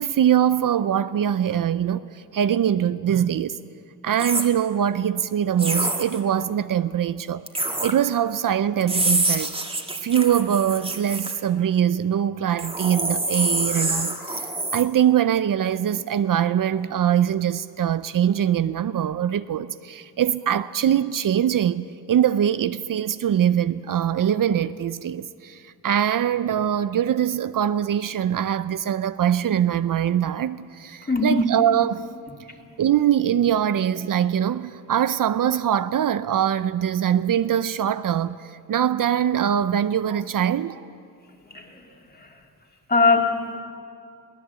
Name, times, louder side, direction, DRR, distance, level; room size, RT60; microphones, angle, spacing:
voice 1, 0.0-3.6 4.0-7.4 7.8-9.6 10.0-14.5 14.7-32.1 32.8-40.9, right 9 dB, 60° right, 0.6 m, -23 dB
sound 1, 4.1-4.5 5.6-6.2 7.5-7.9 8.8-11.3 12.6-14.8, right 2 dB, 15° right, 1.9 m, -26 dB
voice 2, 31.1-31.5 41.5-42.4 42.9-43.6, left 3 dB, 25° left, 2.8 m, -22 dB
22.5 x 17.0 x 8.2 m
wide cardioid pair, 110°, 37 cm